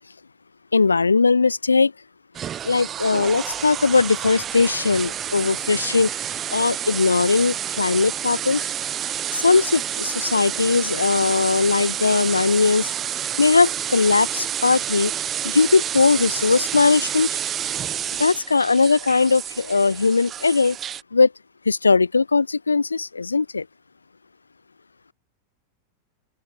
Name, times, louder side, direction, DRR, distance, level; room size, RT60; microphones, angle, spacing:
voice 1, 0.7-1.9 2.6-6.1 6.5-8.6 9.3-12.9 13.4-15.1 15.4-17.3 18.2-20.8 21.1-21.3 21.7-23.7, left 4 dB, 80° left, 0.4 m, -19 dB
sound 1, 2.3-21.0, right 10 dB, 25° right, 1.9 m, -29 dB
open air
figure-of-eight pair, 90°, 0 cm